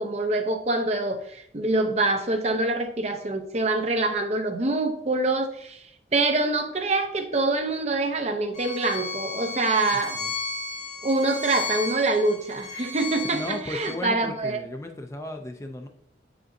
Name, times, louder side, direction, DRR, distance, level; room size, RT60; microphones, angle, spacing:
voice 1, 0.0-5.8 6.1-10.2 11.0-14.6, right 2 dB, 35° right, 5 dB, 0.6 m, -25 dB
Bowed string instrument, 8.5-14.0, left 4 dB, 40° left, 1.0 m, -34 dB
voice 2, 13.2-15.9, left 1 dB, 15° left, 4 dB, 0.4 m, -35 dB
7.4 x 5.1 x 2.6 m, 0.69 s
head